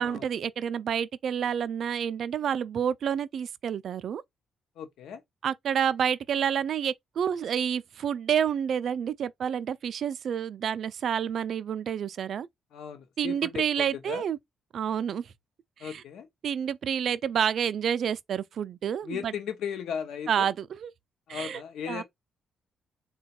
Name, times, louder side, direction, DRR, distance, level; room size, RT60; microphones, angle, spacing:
voice 1, 0.0-4.2 5.4-12.5 13.2-14.4 14.7-15.3 15.8-16.0 16.4-19.3 20.3-20.9 21.3-21.6 21.9-22.0, right 8 dB, 55° right, 0.3 m, -29 dB
voice 2, 4.8-5.2 12.7-14.2 15.8-16.3 19.0-20.5 21.3-22.0, left 8 dB, 80° left, 0.7 m, -36 dB
3.9 x 2.2 x 4.2 m
cardioid pair, 140°, 0 cm